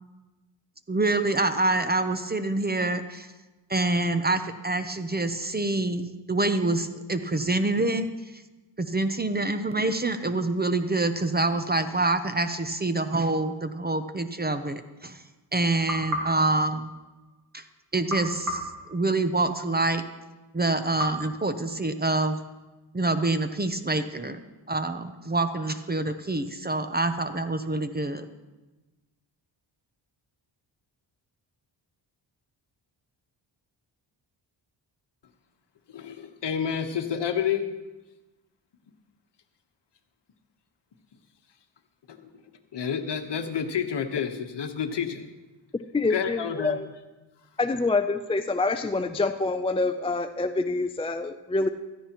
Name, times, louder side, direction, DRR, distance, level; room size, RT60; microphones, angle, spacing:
voice 1, 0.9-3.3 3.7-8.1 8.8-15.2 15.5-16.9 17.5-17.6 17.9-18.6 18.9-20.0 20.5-22.4 22.9-24.4 24.7-28.2, right 2 dB, 20° right, 9 dB, 0.6 m, -26 dB
sound 1, 15.9-17.5 18.1-19.7 21.0-22.3, right 1 dB, 40° right, 2.3 m, -36 dB
voice 2, 35.9-37.6 42.1-42.2 42.7-45.3 46.1-46.8, left 7 dB, 60° left, 7 dB, 1.2 m, -29 dB
voice 3, 45.9-46.9 47.6-51.7, left 3 dB, 15° left, 8 dB, 0.4 m, -26 dB
16.0 x 13.5 x 3.0 m, 1.1 s
cardioid pair, 85°, 46 cm